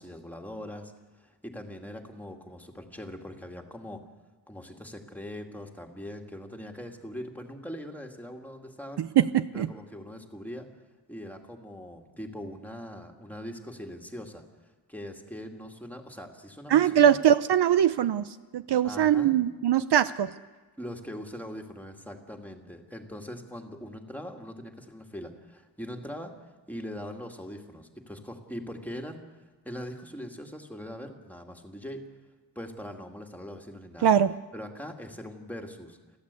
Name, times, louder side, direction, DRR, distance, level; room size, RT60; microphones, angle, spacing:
voice 1, 0.0-4.0 4.5-9.0 9.5-10.7 11.1-17.1 18.8-19.3 20.8-29.3 29.6-32.0 32.6-34.1 34.5-36.0, equal, 5° left, 2 dB, 2.2 m, -41 dB
voice 2, 9.0-9.7 16.7-20.3 34.0-34.3, right 10 dB, 65° right, 13 dB, 0.7 m, -22 dB
29.5 x 12.0 x 8.3 m, 1.3 s
wide cardioid pair, 145°, 44 cm